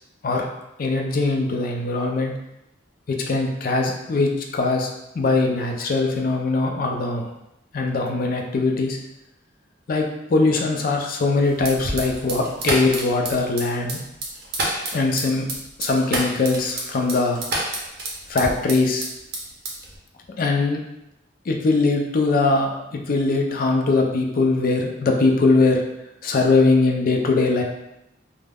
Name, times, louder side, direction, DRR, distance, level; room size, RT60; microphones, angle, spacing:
voice 1, 0.8-2.3 3.1-4.9 5.2-7.3 7.7-9.0 9.9-14.0 14.9-15.5 15.8-17.4 18.3-19.1 20.4-20.8 21.5-25.8 26.2-27.6, left 3 dB, 50° left, 1 dB, 0.4 m, -21 dB
sound 1, 11.6-19.1 19.3-20.0, right 2 dB, 55° right, 0.6 m, -28 dB
2.2 x 2.0 x 3.3 m, 0.87 s
head